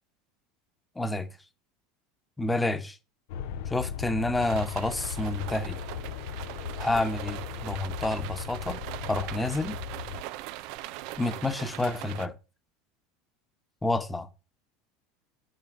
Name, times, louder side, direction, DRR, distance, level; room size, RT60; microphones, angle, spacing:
voice 1, 1.0-1.3 2.4-3.0 3.7-5.8 6.8-8.8 9.1-9.8 11.2-12.3 13.8-14.3, left 2 dB, 10° left, 1.1 m, -29 dB
sound 1, 3.3-10.2, left 9 dB, 70° left, 0.6 m, -37 dB
sound 2, 4.4-12.3, right 15 dB, 60° right, 0.5 m, -41 dB
7.8 x 5.0 x 4.7 m
hypercardioid pair, 85°, 0 cm